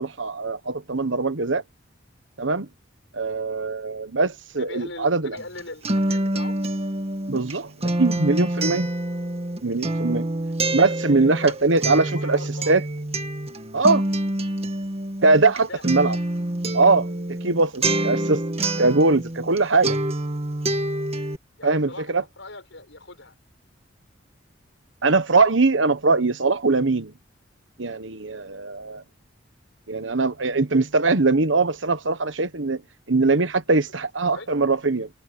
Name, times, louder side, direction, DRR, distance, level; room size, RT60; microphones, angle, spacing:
voice 1, 0.0-1.6 2.4-2.7 3.1-5.4 7.3-8.9 9.6-10.3 10.7-12.4 12.7-12.8 13.7-14.0 15.2-16.2 16.7-17.1 17.4-18.4 18.8-20.0 21.6-22.2 25.0-27.1 27.8-29.0 29.9-32.8 33.1-35.1, right 3 dB, 80° right, 1.3 m, -21 dB
voice 2, 4.6-6.6 9.1-9.2 11.2-12.8 15.5-15.9 21.6-23.4 28.3-28.4 33.7-33.8 34.3-34.6, left 2 dB, 80° left, 7.3 m, -41 dB
Acoustic guitar, 5.4-19.6 19.8-21.4, right 1 dB, 35° right, 1.7 m, -27 dB
head